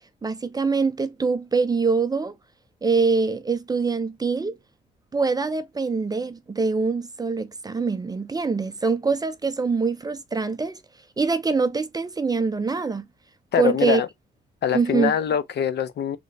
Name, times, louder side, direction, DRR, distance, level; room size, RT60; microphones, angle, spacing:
voice 1, 0.2-2.3 2.8-4.5 5.1-10.8 11.2-13.1 13.6-14.0 14.7-15.1, right 4 dB, 20° right, 0.5 m, -24 dB
voice 2, 13.5-14.1 14.6-16.2, left 8 dB, 60° left, 0.6 m, -23 dB
3.2 x 2.2 x 3.8 m
cardioid pair, 90°, 20 cm